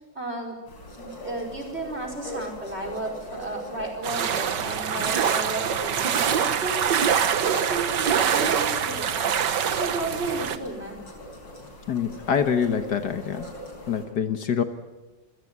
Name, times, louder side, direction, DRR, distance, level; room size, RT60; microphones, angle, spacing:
voice 1, 0.2-0.6 1.0-6.8 7.4-11.0, right 2 dB, 35° right, 1 dB, 5.4 m, -34 dB
sound 1, 0.7-14.1, equal, 90° left, 4.8 m, -42 dB
sound 2, 4.0-10.6, right 8 dB, 70° right, 1.9 m, -24 dB
voice 2, 11.9-13.5 13.9-14.6, left 7 dB, 65° left, 9 dB, 1.8 m, -25 dB
27.5 x 17.0 x 9.6 m, 1.2 s
omnidirectional pair, 2.0 m